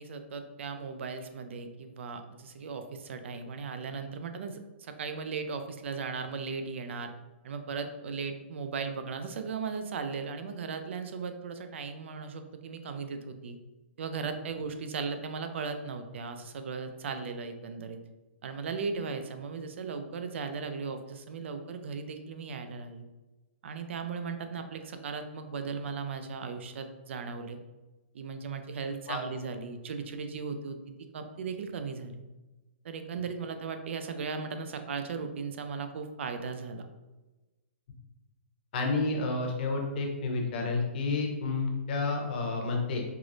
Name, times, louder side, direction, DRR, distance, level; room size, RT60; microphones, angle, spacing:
voice 1, 0.0-7.1 7.4-13.6 14.0-18.0 18.4-23.0 23.6-27.6 28.1-30.8 31.1-32.2 32.8-36.8, right 5 dB, 70° right, 7 dB, 0.4 m, -37 dB
voice 2, 38.7-43.0, left 3 dB, 50° left, 1 dB, 0.7 m, -30 dB
4.6 x 2.0 x 2.5 m, 1.1 s
hypercardioid pair, 160°, 7 cm